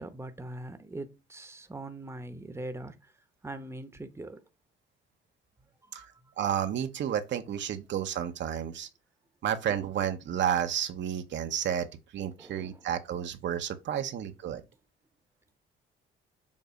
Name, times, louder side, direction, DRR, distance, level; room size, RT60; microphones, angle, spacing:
voice 1, 0.0-3.1 3.4-4.4 5.8-6.3 12.4-12.9, right 2 dB, 15° right, 0.9 m, -42 dB
voice 2, 6.4-8.9 9.4-11.9 12.1-14.6, right 9 dB, 65° right, 0.8 m, -31 dB
7.2 x 2.7 x 5.2 m
cardioid pair, 90°, 20 cm